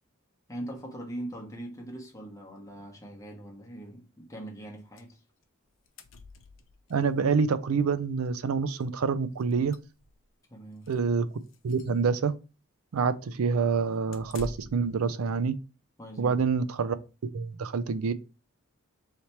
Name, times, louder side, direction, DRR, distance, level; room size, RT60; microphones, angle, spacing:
voice 1, 0.5-5.2 10.5-10.9 16.0-16.4, right 1 dB, 15° left, 1.0 m, -41 dB
sound 1, 5.0-5.1 5.4-5.5 5.7-7.0 8.2-8.3 8.7-8.8 9.3-10.3 10.8-11.0 11.4-12.0 14.1-14.9, left 3 dB, 60° left, 0.6 m, -46 dB
voice 2, 6.9-9.8 10.9-11.3 11.6-12.3 12.9-15.6 16.2-17.0 17.3-18.1, right 5 dB, 80° right, 0.4 m, -27 dB
3.3 x 2.8 x 4.3 m
head